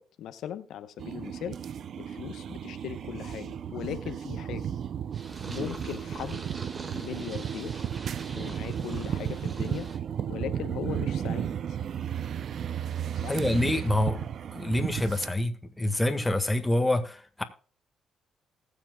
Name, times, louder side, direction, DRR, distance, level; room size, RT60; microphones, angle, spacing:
voice 1, 0.0-1.6 2.0-4.7 5.5-6.4 6.9-7.8 8.3-9.9 10.3-11.8 13.2-13.4, left 10 dB, 80° left, 0.9 m, -38 dB
sound 1, 1.0-15.3, right 9 dB, 60° right, 0.6 m, -34 dB
Purr, 5.1-10.0, right 3 dB, 35° right, 1.8 m, -43 dB
voice 2, 13.3-17.4, left 1 dB, 10° left, 1.6 m, -27 dB
19.5 x 7.4 x 2.3 m
cardioid pair, 90°, 0 cm